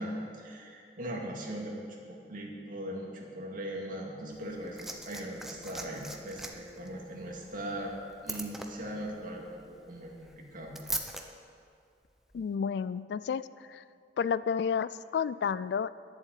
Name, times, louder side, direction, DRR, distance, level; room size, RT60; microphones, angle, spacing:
voice 1, 0.0-8.0 8.2-10.7, right 1 dB, 50° right, -2 dB, 2.2 m, -39 dB
Liquid, 4.3-11.2 12.3-12.4, right 1 dB, ahead, 0.8 m, -42 dB
voice 2, 12.3-13.8 14.2-15.9, left 6 dB, 65° left, 17 dB, 0.3 m, -31 dB
11.0 x 7.5 x 9.0 m, 2.4 s
head